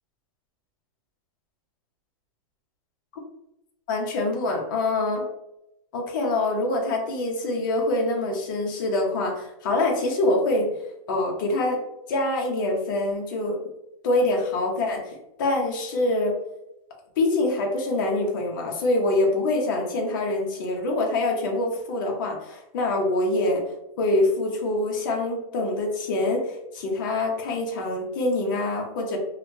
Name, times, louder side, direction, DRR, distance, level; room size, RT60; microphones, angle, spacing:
voice 1, 3.9-5.2 5.9-10.7 11.1-11.8 12.1-13.6 14.0-15.1 15.4-16.3 17.2-23.6 24.0-29.2, left 2 dB, 35° left, 0 dB, 0.6 m, -25 dB
2.7 x 2.1 x 3.0 m, 0.87 s
supercardioid pair, 180°, 18 cm